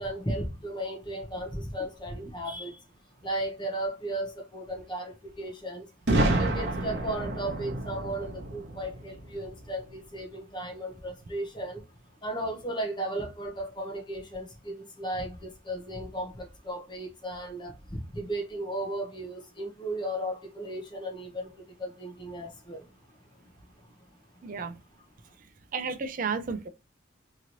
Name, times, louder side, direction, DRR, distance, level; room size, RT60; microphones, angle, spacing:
voice 1, 0.0-2.8 3.2-5.8 6.4-11.8 12.2-21.5 21.8-22.8, right 1 dB, 25° left, 0.7 m, -35 dB
Boom, 6.1-9.9, right 1 dB, 60° right, 0.9 m, -29 dB
voice 2, 24.4-24.8 25.7-26.7, right 5 dB, 45° right, 0.4 m, -32 dB
3.0 x 2.9 x 2.5 m
head